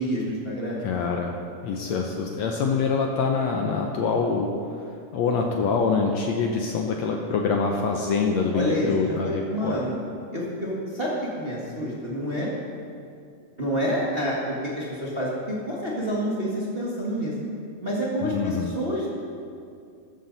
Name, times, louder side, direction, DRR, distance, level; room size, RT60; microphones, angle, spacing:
voice 1, 0.0-0.8 8.5-10.0 10.3-12.5 13.6-17.3 17.8-19.1, equal, 30° right, -5 dB, 1.0 m, -28 dB
voice 2, 0.8-4.5 5.1-9.8 18.2-18.7, left 5 dB, 80° left, 2 dB, 1.5 m, -25 dB
14.5 x 13.5 x 4.1 m, 2.4 s
omnidirectional pair, 4.2 m